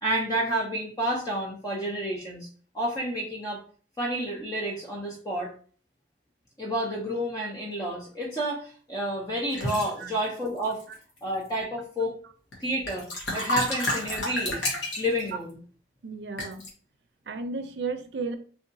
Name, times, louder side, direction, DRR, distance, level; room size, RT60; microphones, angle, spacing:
voice 1, 0.0-2.5 2.7-3.6 4.0-5.5 6.6-10.8 11.2-12.1 12.6-14.6 15.0-15.6, right 1 dB, 20° left, -3 dB, 0.6 m, -30 dB
sound 1, 9.5-9.9 10.6-11.2 12.5-12.6 12.8-15.3 16.4-16.7, left 1 dB, 80° left, 1.3 m, -30 dB
voice 2, 16.0-16.6 17.3-18.3, right 4 dB, 70° right, 8 dB, 0.5 m, -33 dB
3.4 x 2.8 x 2.6 m, 0.42 s
head